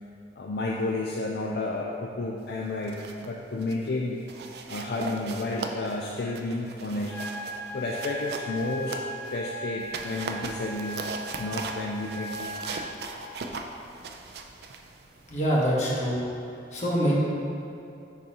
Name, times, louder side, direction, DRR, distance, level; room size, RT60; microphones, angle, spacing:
voice 1, 0.4-7.2 7.7-9.0 9.3-12.6, left 2 dB, 65° left, -2 dB, 0.4 m, -31 dB
sound 1, 2.7-3.3 3.6-3.9 4.3-9.4 9.8-15.7, right 4 dB, 65° right, 0.4 m, -39 dB
sound 2, 7.1-13.1, equal, 10° left, 0.6 m, -38 dB
voice 2, 15.3-16.3 16.7-17.2, equal, 40° left, -5 dB, 1.2 m, -25 dB
9.9 x 3.9 x 2.9 m, 2.6 s
head